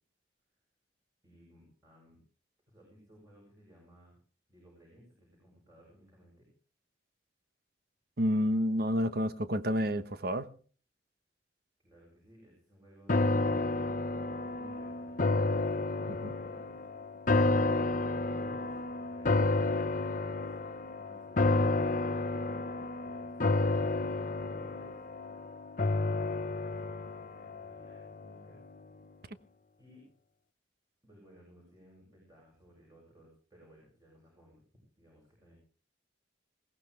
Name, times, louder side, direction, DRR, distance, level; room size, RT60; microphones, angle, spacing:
voice 1, 1.2-2.2 2.7-4.2 4.5-6.5 11.8-13.6 14.3-16.8 17.9-20.5 20.9-22.2 23.0-25.0 25.8-28.6 29.8-30.1 31.0-34.6 35.0-35.5, equal, 20° right, 7.7 m, -59 dB
voice 2, 8.2-10.5 16.1-16.3, equal, 55° right, 1.1 m, -29 dB
sound 1, 13.1-28.4 28.8-28.9, left 2 dB, 45° left, 0.8 m, -31 dB
21.5 x 17.5 x 3.3 m
head